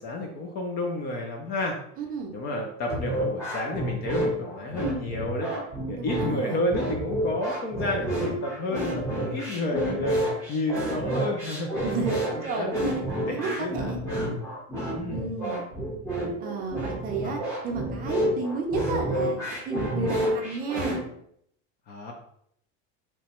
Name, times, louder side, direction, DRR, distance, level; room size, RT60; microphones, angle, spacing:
voice 1, 0.0-1.8 2.3-5.5 5.9-11.7 12.1-12.7 13.2-13.7 14.9-15.2 17.2-17.4 19.9-20.2 21.9-22.1, left 2 dB, 30° left, 2 dB, 0.4 m, -31 dB
voice 2, 2.0-2.4 6.0-6.6 11.8-12.8 13.1-14.0 15.1-15.7 16.4-21.0, right 4 dB, 30° right, 1 dB, 0.5 m, -32 dB
sound 1, 2.9-21.0, right 1 dB, 10° left, 0.9 m, -29 dB
2.9 x 2.2 x 4.1 m, 0.71 s
cardioid pair, 170°, 32 cm